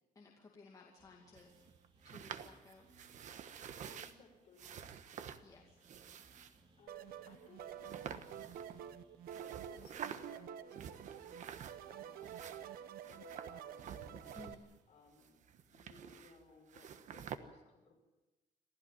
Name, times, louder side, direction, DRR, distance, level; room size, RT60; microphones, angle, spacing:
voice 1, 0.1-1.5 2.0-2.9 5.4-5.8 14.3-14.7, left 3 dB, 25° left, -1 dB, 2.4 m, -58 dB
sound 1, 1.0-15.1, right 3 dB, 35° right, 3.1 m, -70 dB
sound 2, 1.4-4.1 4.6-5.4 5.8-6.6 7.3-7.4 7.8-8.9 9.3-10.4 10.7-11.9 12.2-14.8 15.1-16.4 16.7-17.4, right 8 dB, 55° right, 1.3 m, -49 dB
voice 2, 3.5-4.9 6.4-8.2 9.4-12.6 13.0-15.3 15.6-17.9, left 3 dB, 45° left, 1 dB, 6.7 m, -63 dB
sound 3, 6.9-14.5, right 9 dB, 80° right, 1.0 m, -49 dB
27.0 x 15.5 x 7.6 m, 1.0 s
cardioid pair, 165°, 15 cm